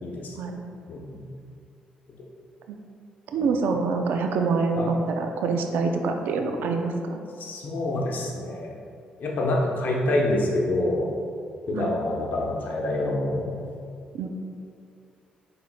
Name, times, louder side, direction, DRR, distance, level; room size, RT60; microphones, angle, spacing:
voice 1, 0.0-0.4 0.9-1.3 3.3-3.4 4.8-4.9 7.4-8.7 9.2-11.1 11.7-13.5, left 1 dB, 65° left, -2 dB, 0.8 m, -26 dB
voice 2, 3.3-7.2 11.8-11.9 14.1-14.3, right 4 dB, 80° right, 4 dB, 0.4 m, -26 dB
5.7 x 3.6 x 2.3 m, 2.4 s
supercardioid pair, 65°, 3 cm